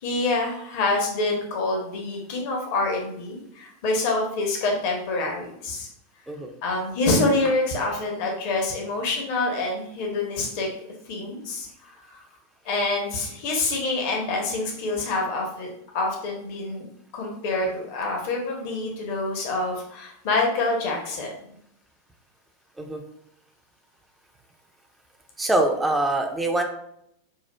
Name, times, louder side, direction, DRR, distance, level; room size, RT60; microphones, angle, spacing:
voice 1, 0.0-5.9 6.6-10.7 11.1-11.7 12.1-12.2 12.6-16.9 17.1-21.3, left 2 dB, 45° left, 0 dB, 0.8 m, -26 dB
voice 2, 25.4-26.6, right 2 dB, 10° right, 3 dB, 0.5 m, -24 dB
5.5 x 2.4 x 2.2 m, 0.74 s
figure-of-eight pair, 90°, 0 cm